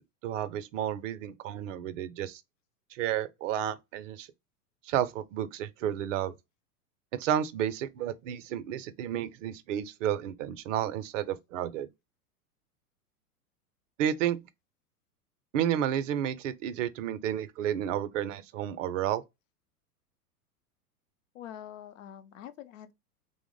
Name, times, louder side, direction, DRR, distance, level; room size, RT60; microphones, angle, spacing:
voice 1, 0.2-2.4 2.9-4.3 4.8-6.3 7.1-11.9 14.0-14.4 15.5-19.2, right 10 dB, 55° right, 0.5 m, -31 dB
voice 2, 21.3-22.9, left 10 dB, 55° left, 0.6 m, -45 dB
2.9 x 2.0 x 3.7 m
hypercardioid pair, 100°, 46 cm